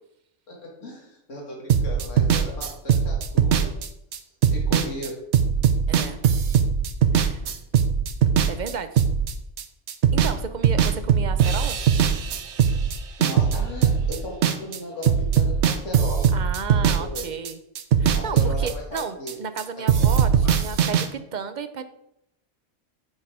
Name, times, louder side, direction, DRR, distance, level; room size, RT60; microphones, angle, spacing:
voice 1, 0.5-3.7 4.5-5.2 13.2-16.3 16.7-17.3 18.1-19.4 19.8-19.9 20.4-20.6, left 1 dB, 85° left, -2 dB, 2.3 m, -36 dB
sound 1, 1.7-9.6 9.9-10.4 10.6-14.8 15.0-17.5 17.8-19.6 19.9-21.1, right 7 dB, 70° right, 1.0 m, -20 dB
voice 2, 5.9-6.2 7.1-7.4 8.5-9.0 10.1-11.8 16.3-17.6 18.0-21.8, right 6 dB, 45° right, 10 dB, 0.7 m, -33 dB
9.0 x 5.6 x 4.7 m, 0.78 s
omnidirectional pair, 1.3 m